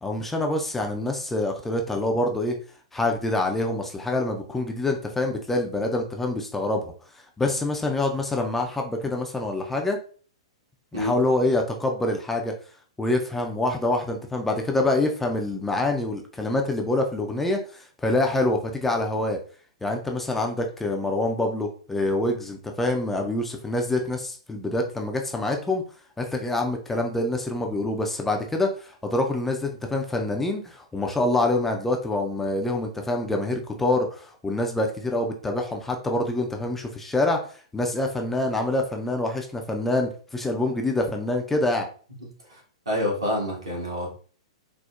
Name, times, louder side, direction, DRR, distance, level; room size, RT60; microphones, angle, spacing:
voice 1, 0.0-2.6 2.9-6.8 7.1-10.0 10.9-12.5 13.0-19.4 19.8-25.8 26.2-37.4 37.7-41.9, left 2 dB, 5° left, 2 dB, 0.4 m, -26 dB
voice 2, 42.5-44.1, left 1 dB, 75° right, -2 dB, 1.4 m, -28 dB
4.2 x 2.0 x 2.3 m, 0.42 s
figure-of-eight pair, 105°, 3 cm